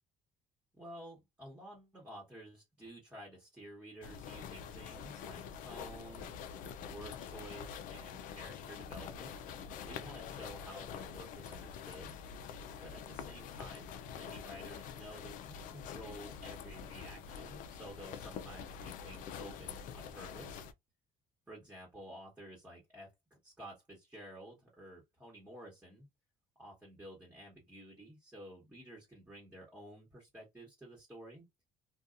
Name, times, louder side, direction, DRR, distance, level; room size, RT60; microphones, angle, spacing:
voice 1, 0.7-6.3 6.8-9.4 9.9-12.1 12.8-20.7 21.5-26.1 26.6-31.5, right 1 dB, 10° right, 1.2 m, -52 dB
sound 1, 4.0-20.7, left 7 dB, 65° left, 0.4 m, -46 dB
2.7 x 2.3 x 2.4 m
cardioid pair, 110°, 14 cm